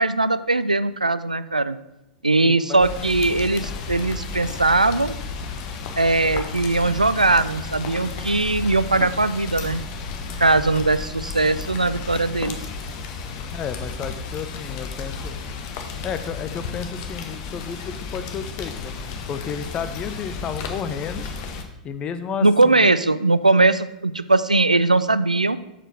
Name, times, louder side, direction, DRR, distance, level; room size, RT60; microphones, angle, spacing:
voice 1, 0.0-1.8 2.2-5.1 6.0-9.8 10.4-12.6 22.4-25.6, right 2 dB, 85° right, 14 dB, 0.3 m, -20 dB
voice 2, 2.4-2.8 13.5-15.4 16.0-18.9 19.3-21.3 21.8-22.9, left 7 dB, 25° left, 10 dB, 0.6 m, -32 dB
Rain, 2.8-21.6, left 4 dB, 45° left, 0.9 m, -33 dB
6.5 x 5.0 x 6.0 m, 0.89 s
figure-of-eight pair, 95°, 4 cm